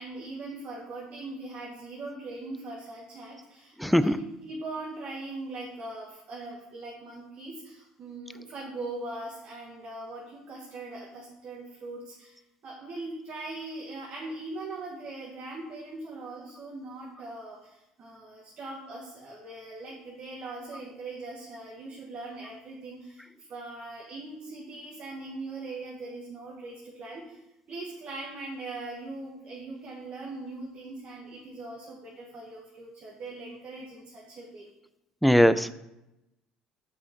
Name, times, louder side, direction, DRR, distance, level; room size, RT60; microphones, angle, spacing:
voice 1, 0.0-12.4 12.6-27.4 27.7-34.7, right 2 dB, 50° right, -3 dB, 1.4 m, -40 dB
voice 2, 3.8-4.2 35.2-35.7, equal, ahead, 14 dB, 0.3 m, -20 dB
5.7 x 4.8 x 4.5 m, 0.90 s
supercardioid pair, 90°, 3 cm